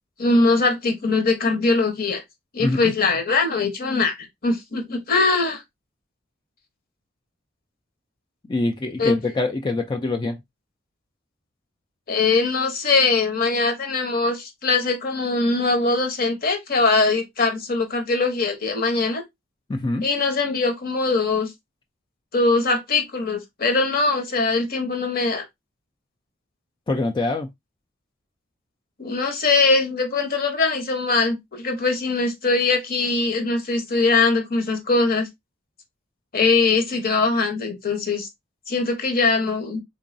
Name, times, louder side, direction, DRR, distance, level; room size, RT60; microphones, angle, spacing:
voice 1, 0.2-2.2 2.5-4.2 4.4-5.6 9.0-9.2 12.1-19.2 20.0-21.5 22.3-25.4 29.0-35.3 36.3-38.3 38.7-39.8, left 3 dB, 45° left, 0.9 m, -21 dB
voice 2, 8.5-10.4 19.7-20.1 26.9-27.5, left 2 dB, 25° left, 0.3 m, -24 dB
3.8 x 3.0 x 2.6 m
head